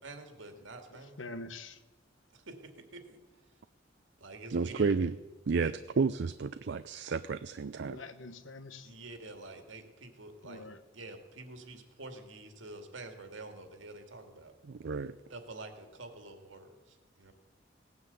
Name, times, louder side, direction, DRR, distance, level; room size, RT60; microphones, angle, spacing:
voice 1, 0.0-1.2 2.3-3.5 4.2-4.9 5.6-5.7 8.8-10.7 10.9-14.5 15.3-17.3, right 2 dB, 80° right, 6 dB, 2.2 m, -47 dB
voice 2, 1.2-1.8 7.8-8.9 10.4-10.8, left 2 dB, 90° left, 11 dB, 1.2 m, -45 dB
voice 3, 4.5-5.2 5.5-8.0 14.7-15.1, right 4 dB, 65° right, 13 dB, 0.5 m, -31 dB
18.0 x 9.6 x 8.2 m, 1.2 s
head